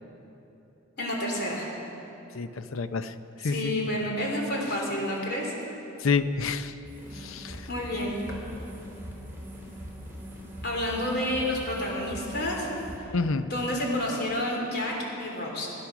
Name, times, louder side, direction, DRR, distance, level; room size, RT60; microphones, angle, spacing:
voice 1, 1.0-1.7 3.4-5.5 7.7-8.2 10.6-12.7 13.5-15.7, left 1 dB, 50° left, -1 dB, 3.1 m, -29 dB
voice 2, 2.3-3.1 3.4-3.8 6.0-6.7 7.1-7.7 13.1-13.5, left 4 dB, 75° left, 12 dB, 0.6 m, -28 dB
sound 1, 6.8-13.0, equal, 10° right, 3.4 m, -41 dB
19.0 x 10.0 x 5.9 m, 3.0 s
head